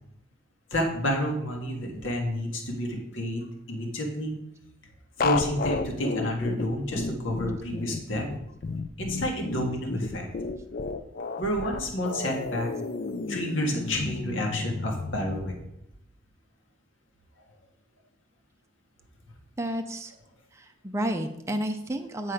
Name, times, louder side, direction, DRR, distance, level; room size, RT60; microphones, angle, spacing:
voice 1, 0.7-4.4 5.2-8.3 9.0-10.3 11.4-12.7 13.3-15.5, equal, 80° left, 1 dB, 1.8 m, -30 dB
sound 1, 5.2-15.4, left 3 dB, 45° left, 0.4 m, -32 dB
voice 2, 19.6-20.1 20.5-22.3, right 1 dB, 15° right, 4 dB, 0.5 m, -31 dB
9.5 x 4.4 x 4.9 m, 0.80 s
head